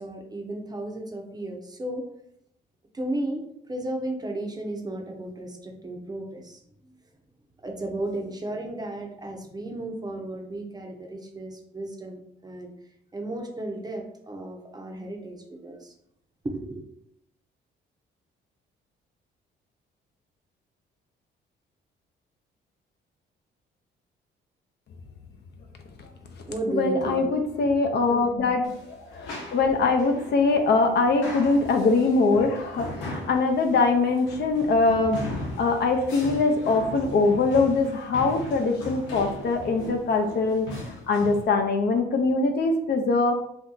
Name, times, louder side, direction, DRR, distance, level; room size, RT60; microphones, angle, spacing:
voice 1, 0.0-2.0 2.9-6.9 7.6-12.7 13.1-15.9 16.4-16.9 26.5-27.3 27.9-28.0, right 1 dB, 20° right, 2 dB, 0.6 m, -34 dB
voice 2, 26.7-40.8 41.1-43.3, left 3 dB, 55° left, 4 dB, 0.5 m, -23 dB
sound 1, 28.6-41.5, left 1 dB, 80° left, 0.9 m, -38 dB
2.7 x 2.3 x 3.7 m, 0.74 s
cardioid pair, 90°, 20 cm